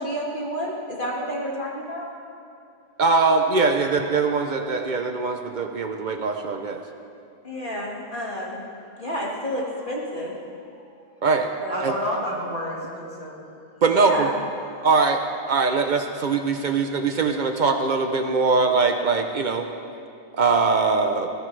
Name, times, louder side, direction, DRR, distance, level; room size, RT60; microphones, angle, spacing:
voice 1, 0.0-2.1 7.4-8.6 9.0-10.3 11.6-12.0 13.9-14.3, equal, 30° left, -4 dB, 2.1 m, -30 dB
voice 2, 3.0-6.8 11.2-11.5 11.8-11.9 13.8-14.3 14.8-15.2 15.5-19.7 20.3-21.3, right 4 dB, 85° right, 5 dB, 0.4 m, -22 dB
voice 3, 11.7-13.3 14.7-14.9 16.5-16.6, equal, 20° right, -6 dB, 3.4 m, -31 dB
20.5 x 16.5 x 3.3 m, 2.5 s
omnidirectional pair, 1.9 m